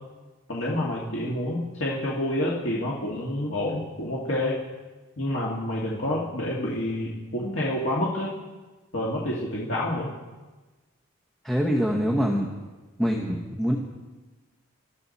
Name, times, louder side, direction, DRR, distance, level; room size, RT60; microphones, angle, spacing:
voice 1, 0.5-4.6 5.2-8.3 8.9-10.1, left 1 dB, 55° left, -5 dB, 1.9 m, -28 dB
voice 2, 11.4-12.5 13.0-13.8, equal, ahead, -1 dB, 1.1 m, -24 dB
20.0 x 13.0 x 4.2 m, 1.2 s
head